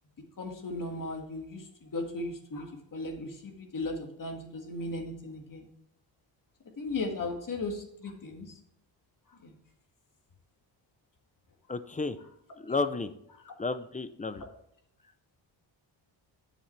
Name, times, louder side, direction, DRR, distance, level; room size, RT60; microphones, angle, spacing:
voice 1, 0.4-5.7 6.8-8.5 9.4-9.5 13.5-13.6, left 2 dB, 45° left, 3 dB, 1.9 m, -37 dB
voice 2, 11.7-12.2 12.6-13.1 13.6-14.5, left 3 dB, 15° left, 12 dB, 0.5 m, -32 dB
9.5 x 7.1 x 3.3 m, 0.73 s
cardioid pair, 110°, 46 cm